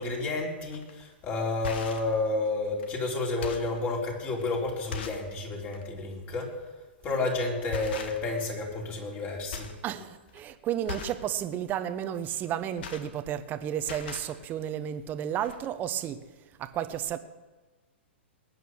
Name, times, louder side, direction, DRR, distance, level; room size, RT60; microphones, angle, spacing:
voice 1, 0.0-6.6 7.0-9.7, left 3 dB, 30° left, -1 dB, 4.3 m, -31 dB
sound 1, 0.7-0.9 1.5-2.1 2.8-2.9 3.2-3.8 4.4-4.5 4.9-5.3 5.7-5.9 7.0-7.3 7.7-8.4 8.7-9.2 9.5-9.8 10.1-10.4 10.8-11.2 12.4-13.5 13.8-14.3 15.1-15.2 15.4-15.6, left 4 dB, 60° left, 1.8 m, -39 dB
voice 2, 9.8-16.2 16.6-17.2, right 10 dB, 30° right, 11 dB, 1.1 m, -32 dB
20.5 x 9.3 x 6.4 m, 1.2 s
hypercardioid pair, 115°, 6 cm